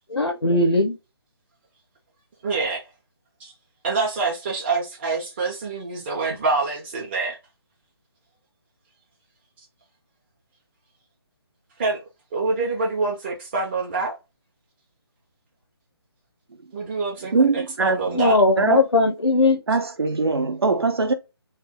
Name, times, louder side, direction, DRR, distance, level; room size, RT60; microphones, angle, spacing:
voice 1, 0.1-1.0 18.1-19.6, left 2 dB, 85° left, 0.8 m, -19 dB
voice 2, 2.4-2.8 3.4-3.5 3.8-7.4 11.8-12.0 12.3-14.2 16.7-18.4, right 3 dB, 25° right, 0.7 m, -26 dB
voice 3, 17.2-18.8 19.7-21.1, right 4 dB, 65° right, 0.8 m, -22 dB
3.2 x 2.3 x 3.7 m
figure-of-eight pair, 150°, 14 cm